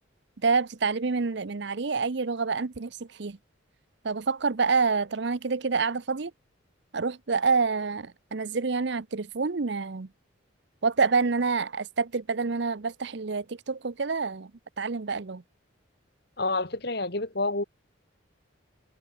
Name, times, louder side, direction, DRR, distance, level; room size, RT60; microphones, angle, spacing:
voice 1, 0.4-3.4 4.0-6.3 6.9-10.1 10.8-14.5 14.8-15.4, right 4 dB, 60° right, 0.7 m, -27 dB
voice 2, 16.4-17.6, left 2 dB, 55° left, 2.6 m, -28 dB
head